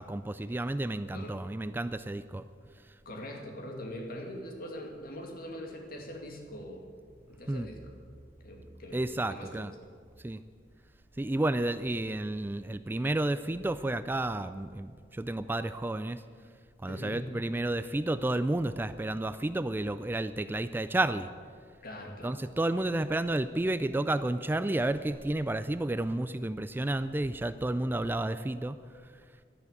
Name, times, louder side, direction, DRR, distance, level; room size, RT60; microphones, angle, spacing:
voice 1, 0.0-2.4 7.5-7.7 8.9-9.7 10.2-10.4 11.2-16.2 16.8-21.3 22.2-28.8, right 1 dB, 10° right, 12 dB, 0.3 m, -31 dB
voice 2, 3.1-6.8 7.3-7.9 8.4-9.7 16.9-17.3 21.8-22.4, left 1 dB, 55° left, 1 dB, 2.4 m, -42 dB
12.5 x 10.5 x 8.3 m, 2.1 s
head